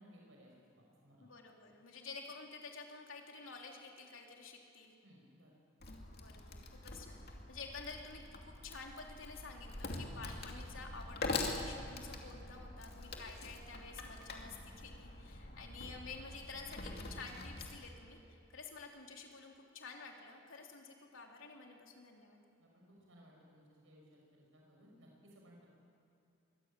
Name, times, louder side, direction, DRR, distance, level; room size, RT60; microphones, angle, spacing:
voice 1, 0.0-1.3 5.0-5.6 22.6-25.7, equal, 80° right, -1 dB, 6.2 m, -61 dB
voice 2, 1.2-5.0 6.2-22.4, left 4 dB, 85° left, 1 dB, 3.3 m, -51 dB
Wood, 5.8-17.8, left 2 dB, 50° left, 2.6 m, -44 dB
23.5 x 16.5 x 9.0 m, 2.7 s
head